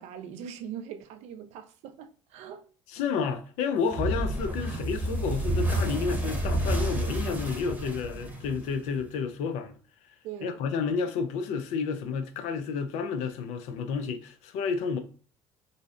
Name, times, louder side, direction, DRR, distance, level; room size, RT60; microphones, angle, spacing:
voice 1, 0.0-2.7 10.2-10.6, right 8 dB, 65° right, 0.4 m, -41 dB
voice 2, 2.9-9.7 10.4-15.0, left 5 dB, 70° left, 0.4 m, -30 dB
sound 1, 3.9-9.0, right 1 dB, 15° right, 0.9 m, -30 dB
2.6 x 2.0 x 2.4 m
supercardioid pair, 75°, 12 cm